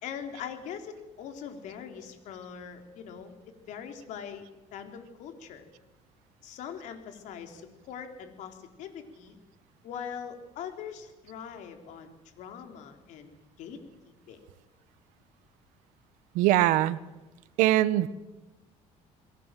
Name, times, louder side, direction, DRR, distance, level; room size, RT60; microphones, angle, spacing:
voice 1, 0.0-3.3 3.6-4.5 4.7-5.6 6.4-9.4 9.8-13.8 14.1-14.4, left 7 dB, 70° left, 6 dB, 3.9 m, -42 dB
voice 2, 16.3-17.0 17.6-18.1, right 15 dB, 85° right, 16 dB, 1.2 m, -22 dB
28.5 x 22.0 x 7.7 m, 1.1 s
cardioid pair, 115°, 13 cm